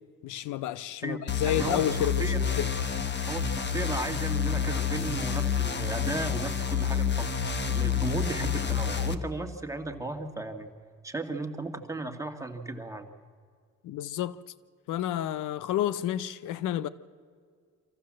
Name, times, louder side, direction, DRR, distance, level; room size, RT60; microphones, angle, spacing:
voice 1, 0.2-2.2 2.6-2.7 13.8-14.4 14.9-16.9, left 12 dB, 85° left, 0.7 m, -30 dB
sound 1, 1.3-9.1, left 7 dB, 35° left, 1.2 m, -29 dB
voice 2, 1.5-2.4 3.2-10.7 11.0-13.1, right 2 dB, 10° right, 2.0 m, -35 dB
25.0 x 15.0 x 7.5 m
cardioid pair, 90°, 30 cm